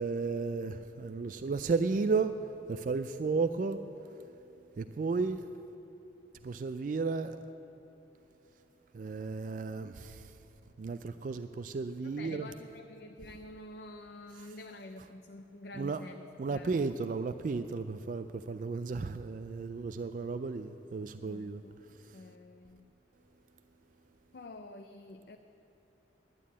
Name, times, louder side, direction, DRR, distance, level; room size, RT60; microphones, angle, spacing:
voice 1, 0.0-5.5 6.4-7.4 8.9-10.5 10.8-12.5 14.3-14.6 15.7-16.0 16.4-22.3, right 4 dB, 45° right, 0.3 m, -34 dB
voice 2, 12.0-16.7 21.2-21.5 21.8-21.9 22.1-22.9 24.3-25.4, left 2 dB, 55° left, 0.5 m, -48 dB
11.0 x 9.2 x 8.5 m
head